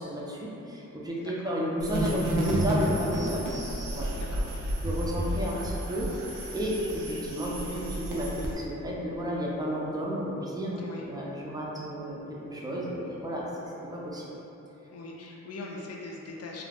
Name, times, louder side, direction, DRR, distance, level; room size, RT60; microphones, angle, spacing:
voice 1, 0.0-3.4 3.9-4.1 4.8-6.1 6.5-13.5 13.9-14.2, equal, 10° right, -5 dB, 0.5 m, -32 dB
voice 2, 1.2-1.5 4.1-4.5 10.8-11.0 14.9-16.6, left 3 dB, 50° left, -2 dB, 0.4 m, -41 dB
sound 1, 1.8-8.5, right 1 dB, 75° right, 0.5 m, -31 dB
2.4 x 2.0 x 3.3 m, 3.0 s
cardioid pair, 65°, 32 cm